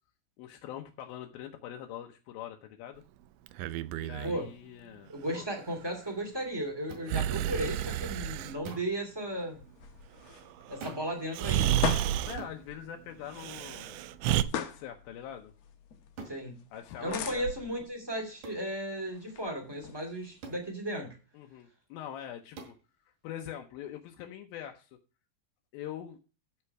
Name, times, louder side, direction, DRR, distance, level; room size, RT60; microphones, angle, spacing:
voice 1, 0.4-3.0 3.9-5.5 12.2-14.0 14.4-15.5 16.7-17.8 21.3-22.7 23.0-24.9 25.7-26.2, left 10 dB, 85° left, 3 dB, 2.6 m, -43 dB
Breathing, 3.5-4.4 7.1-8.6 10.7-10.8 11.3-12.4 13.3-14.4, right 12 dB, 80° right, 1.8 m, -30 dB
voice 2, 5.1-9.6 10.7-11.9 16.2-16.6 17.0-21.2, right 1 dB, 10° right, 1 dB, 1.9 m, -35 dB
sound 1, 6.9-7.1 8.6-9.0 10.8-11.2 12.4-12.6 14.3-14.6 16.2-16.4 18.4-18.7 20.4-20.7 22.6-22.8, right 4 dB, 65° right, 3.6 m, -44 dB
sound 2, 9.4-20.8, left 7 dB, 70° left, 1.7 m, -42 dB
13.0 x 4.4 x 5.8 m, 0.33 s
omnidirectional pair, 4.2 m